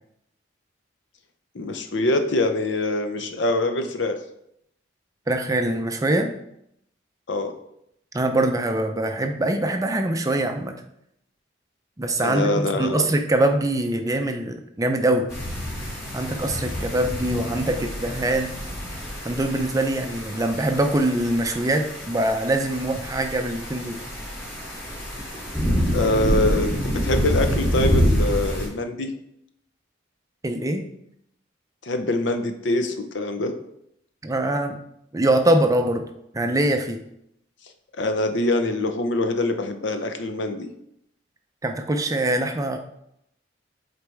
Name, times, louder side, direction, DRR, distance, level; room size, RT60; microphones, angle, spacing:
voice 1, 1.5-4.2 7.3-7.5 12.2-13.1 25.9-29.1 31.8-33.5 38.0-40.6, left 2 dB, 65° left, 7 dB, 0.7 m, -24 dB
voice 2, 5.3-6.3 8.1-10.7 12.0-15.3 16.1-18.5 19.2-24.0 30.4-30.8 34.2-34.8 35.1-36.0 36.3-37.0 41.6-42.8, right 1 dB, 15° right, 5 dB, 0.4 m, -23 dB
sound 1, 15.3-28.7, equal, 15° left, 2.3 m, -27 dB
7.9 x 4.1 x 3.4 m, 0.76 s
head